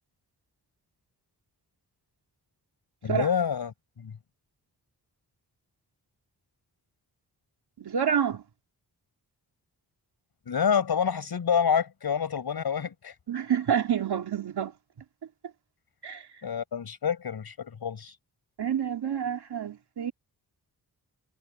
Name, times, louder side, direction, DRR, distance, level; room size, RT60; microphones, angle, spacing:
voice 1, 3.0-4.1 10.5-13.1 16.4-18.1, left 7 dB, 75° left, 5.3 m, -28 dB
voice 2, 7.8-8.4 13.3-14.7 16.0-16.3 18.6-20.1, right 8 dB, 80° right, 2.6 m, -28 dB
wide cardioid pair, 175°, 39 cm